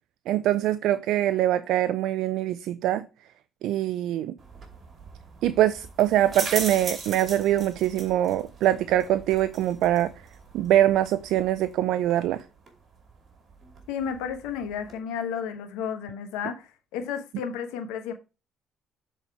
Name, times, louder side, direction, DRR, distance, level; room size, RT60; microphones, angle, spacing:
voice 1, 0.3-3.1 3.6-4.3 5.4-10.1 10.5-12.4, right 12 dB, 75° right, 0.4 m, -23 dB
sound 1, 4.4-15.0, right 4 dB, 45° right, 2.5 m, -40 dB
voice 2, 13.9-18.1, left 7 dB, 85° left, 1.1 m, -32 dB
6.9 x 4.1 x 4.7 m
supercardioid pair, 80°, 0 cm